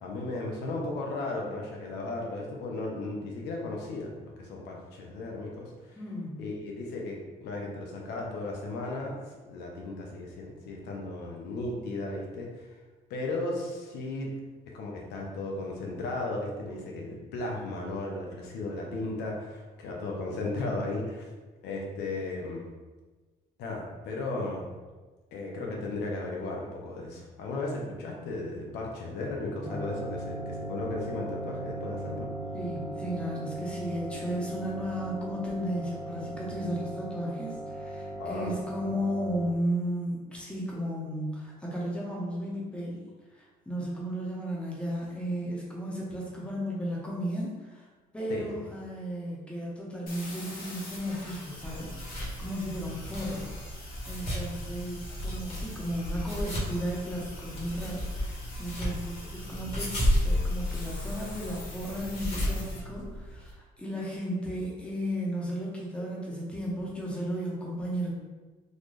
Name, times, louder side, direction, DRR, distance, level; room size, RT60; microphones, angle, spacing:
voice 1, 0.0-6.0 6.4-9.2 9.5-12.7 13.1-14.3 14.7-21.2 21.6-22.6 23.6-24.7 25.3-32.3 38.2-38.6 48.3-48.6, left 2 dB, 85° left, -1 dB, 0.8 m, -35 dB
voice 2, 6.0-6.4 32.5-43.0 43.3-47.9 48.1-53.5 54.0-68.1, equal, 5° left, -5 dB, 1.1 m, -34 dB
sound 1, 29.6-39.5, right 1 dB, 15° right, 0.5 m, -38 dB
sound 2, 50.1-62.8, left 2 dB, 60° left, 1.4 m, -46 dB
sound 3, 51.6-63.5, equal, 40° left, 1.5 m, -33 dB
4.0 x 2.5 x 3.2 m, 1.3 s
cardioid pair, 110°, 17 cm